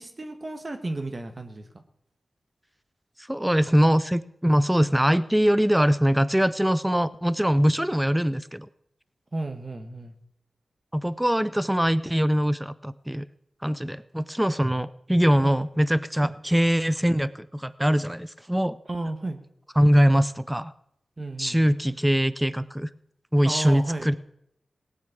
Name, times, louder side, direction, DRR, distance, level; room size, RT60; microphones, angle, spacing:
voice 1, 0.0-1.8 9.3-10.1 15.4-15.6 16.2-16.4 18.9-19.4 21.2-21.7 23.4-24.1, right 2 dB, 40° right, 6 dB, 1.4 m, -33 dB
voice 2, 3.3-8.7 10.9-13.3 13.6-18.8 19.8-20.7 21.4-22.9 23.3-24.1, equal, 5° right, 15 dB, 0.5 m, -22 dB
18.0 x 6.5 x 8.4 m, 0.74 s
cardioid pair, 55°, 0 cm